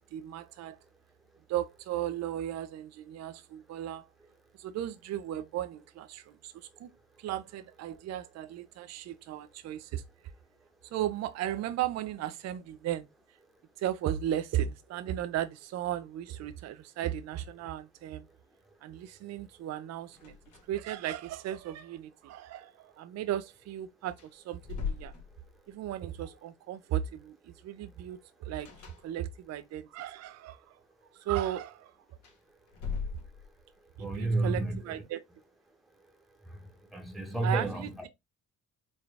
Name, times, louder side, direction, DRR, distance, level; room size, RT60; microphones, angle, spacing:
voice 1, 0.1-0.8 1.5-4.1 4.6-6.9 7.2-10.0 10.9-13.1 13.8-18.3 18.8-20.4 20.7-25.1 25.7-28.7 29.0-30.8 31.2-31.9 34.0-35.2 37.4-38.1, right 12 dB, 60° right, 0.4 m, -36 dB
sound 1, 20.1-21.0 21.2-21.3 23.6-23.7 24.1-25.8 28.6-29.6 32.1-33.8, left 5 dB, 75° left, 1.4 m, -40 dB
voice 2, 34.0-35.0 36.5-38.1, right 2 dB, ahead, 0.9 m, -32 dB
4.0 x 2.2 x 3.3 m
cardioid pair, 90°, 30 cm